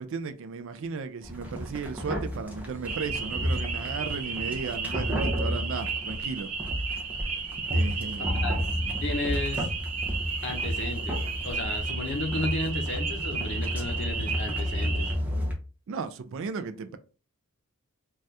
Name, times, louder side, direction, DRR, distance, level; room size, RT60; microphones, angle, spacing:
voice 1, 0.0-6.5 7.7-8.5 15.9-17.0, right 5 dB, 60° right, 0.3 m, -35 dB
sound 1, 1.2-15.5, equal, 5° right, 0.6 m, -32 dB
sound 2, 2.9-15.1, right 5 dB, 85° right, 0.7 m, -34 dB
voice 2, 8.2-8.6 9.0-9.7 10.4-15.1, left 2 dB, 55° left, 0.7 m, -34 dB
2.7 x 2.3 x 3.2 m
head